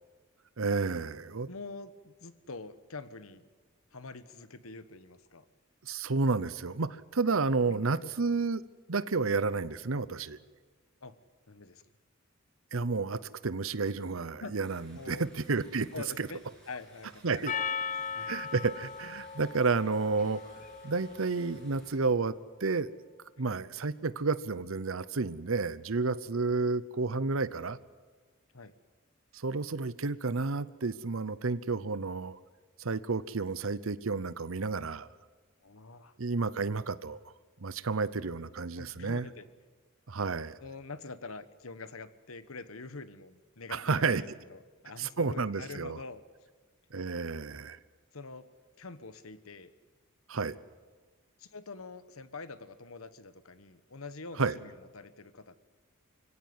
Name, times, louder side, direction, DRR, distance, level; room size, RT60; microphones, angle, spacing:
voice 1, 0.6-1.5 5.8-8.6 8.9-10.4 12.7-15.9 16.2-16.3 17.2-17.5 18.2-20.4 20.8-22.3 22.6-22.9 23.4-27.8 29.3-32.4 32.8-35.1 36.2-37.3 37.6-39.3 40.1-40.6 43.7-44.2 45.0-46.0 46.9-47.8 50.3-50.6 54.4-54.6, right 4 dB, 70° right, 16 dB, 0.8 m, -31 dB
voice 2, 1.5-3.5 3.9-5.4 7.6-8.1 11.0-11.2 11.5-11.8 14.4-14.6 14.9-15.3 15.9-17.6 18.1-18.3 23.4-23.6 26.5-26.6 28.5-28.7 35.6-36.1 38.2-38.3 38.8-39.4 40.6-46.2 48.1-48.5 48.8-49.7 51.4-55.7, left 3 dB, 80° left, 14 dB, 1.3 m, -45 dB
sound 1, 14.6-22.0, right 1 dB, 5° left, 7.7 m, -59 dB
Percussion, 17.5-22.1, left 6 dB, 40° left, 0.7 m, -38 dB
24.5 x 17.0 x 9.6 m, 1.4 s
head